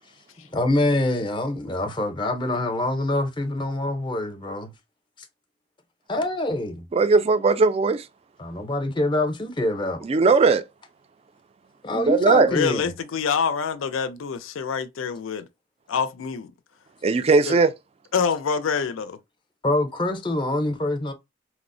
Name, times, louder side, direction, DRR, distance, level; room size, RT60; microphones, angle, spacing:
voice 1, 0.5-4.7 6.1-6.8 8.4-10.0 11.8-12.9 19.6-21.1, left 1 dB, 25° left, 0.6 m, -25 dB
voice 2, 6.9-8.0 10.0-10.6 11.9-12.5 17.0-17.7, right 4 dB, 30° right, 0.3 m, -18 dB
voice 3, 12.5-15.5 15.9-16.5 17.5-17.6 18.1-19.2, left 6 dB, 80° left, 0.4 m, -26 dB
4.2 x 2.0 x 2.5 m
head